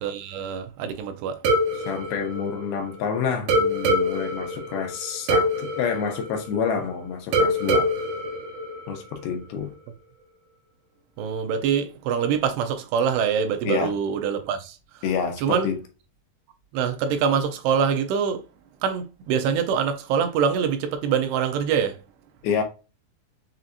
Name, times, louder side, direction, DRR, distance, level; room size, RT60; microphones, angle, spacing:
voice 1, 0.0-1.4 11.2-15.0 15.4-15.7 16.7-18.4 18.8-22.0, right 7 dB, 85° right, 2.8 m, -24 dB
sound 1, 1.4-3.0 3.5-6.9 7.3-9.3, equal, 70° right, 2.3 m, -25 dB
voice 2, 1.9-7.9 8.9-9.7 13.6-13.9 15.0-15.8 22.4-22.6, left 6 dB, 80° left, 2.7 m, -28 dB
7.4 x 2.7 x 2.4 m
omnidirectional pair, 4.6 m